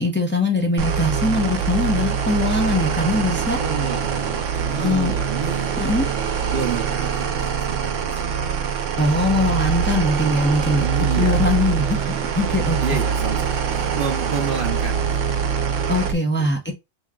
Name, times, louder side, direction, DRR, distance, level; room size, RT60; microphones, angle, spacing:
voice 1, 0.0-3.6 4.8-5.1 5.8-6.1 9.0-12.8 15.9-16.7, left 2 dB, 10° left, 0.8 m, -22 dB
sound 1, 0.8-16.1, right 7 dB, 85° right, 1.1 m, -23 dB
voice 2, 3.6-5.8 6.5-8.4 10.8-11.9 12.8-15.4 16.4-16.5, right 5 dB, 50° right, 1.0 m, -30 dB
3.5 x 3.0 x 3.7 m
omnidirectional pair, 1.3 m